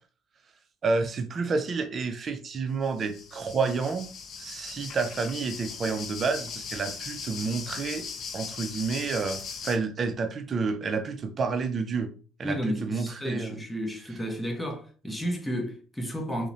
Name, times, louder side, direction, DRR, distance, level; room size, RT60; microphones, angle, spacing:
voice 1, 0.8-4.1 4.4-8.0 8.3-12.1 12.4-13.6, right 4 dB, 35° right, 0.4 m, -29 dB
sound 1, 2.8-9.8, left 6 dB, 55° left, 0.4 m, -39 dB
voice 2, 12.4-16.5, equal, 5° left, 0.6 m, -32 dB
2.8 x 2.0 x 2.5 m
cardioid pair, 110°, 0 cm